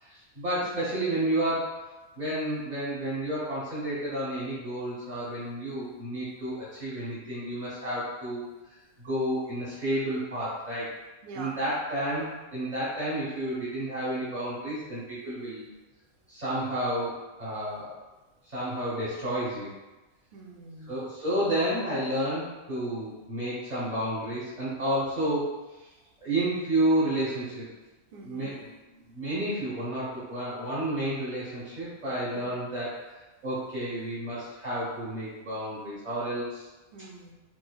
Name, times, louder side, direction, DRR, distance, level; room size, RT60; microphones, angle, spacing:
voice 1, 0.0-1.8 2.2-8.4 9.0-10.9 11.3-15.7 16.3-17.9 18.5-19.7 20.9-25.5 26.2-27.7 28.2-28.7 29.0-33.0 33.4-36.7, right 1 dB, 35° right, -11 dB, 1.0 m, -31 dB
voice 2, 0.6-1.1 11.2-11.6 20.3-21.0 28.1-28.5 32.4-32.7 36.9-37.3, right 3 dB, 65° right, 1 dB, 0.5 m, -45 dB
4.5 x 2.6 x 2.3 m, 1.1 s
omnidirectional pair, 1.5 m